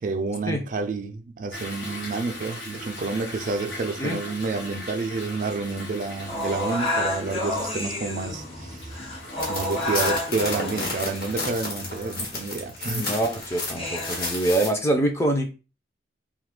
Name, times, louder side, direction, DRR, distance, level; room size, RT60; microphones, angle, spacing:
voice 1, 0.0-9.0 9.5-13.1, right 3 dB, 45° right, 0.4 m, -29 dB
Toilet flush / Drip / Trickle dribble, 1.5-11.6, left 1 dB, 75° left, 0.9 m, -39 dB
sound 1, 6.3-14.3, left 1 dB, 30° left, 0.8 m, -31 dB
sound 2, 9.4-14.7, left 2 dB, 55° left, 1.2 m, -32 dB
voice 2, 12.9-15.5, right 1 dB, 15° left, 0.5 m, -25 dB
2.7 x 2.4 x 3.6 m
head